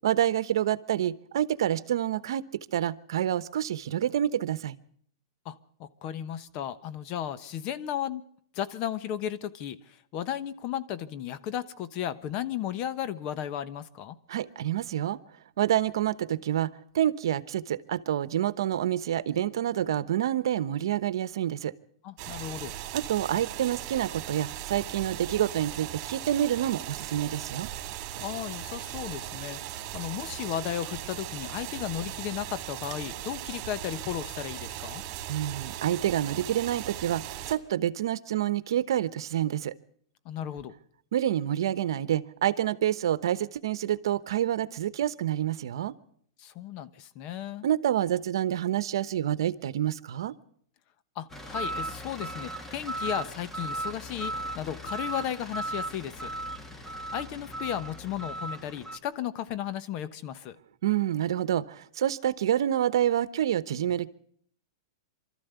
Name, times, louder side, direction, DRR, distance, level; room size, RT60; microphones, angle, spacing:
voice 1, 0.0-4.8 14.3-15.2 15.6-16.7 16.9-21.7 22.9-27.7 35.3-39.7 41.1-45.9 47.6-50.3 60.8-64.1, right 11 dB, 75° right, 16 dB, 1.0 m, -28 dB
voice 2, 5.4-8.2 8.5-14.2 22.0-22.7 28.2-35.0 40.2-40.7 46.4-47.7 51.1-56.3 56.8-60.6, left 10 dB, 40° left, 14 dB, 1.1 m, -35 dB
sound 1, 22.2-37.6, right 13 dB, 45° right, 2.5 m, -38 dB
sound 2, 51.3-59.0, right 1 dB, 10° left, 1.9 m, -36 dB
24.5 x 13.5 x 8.2 m, 0.66 s
hypercardioid pair, 135°, 2 cm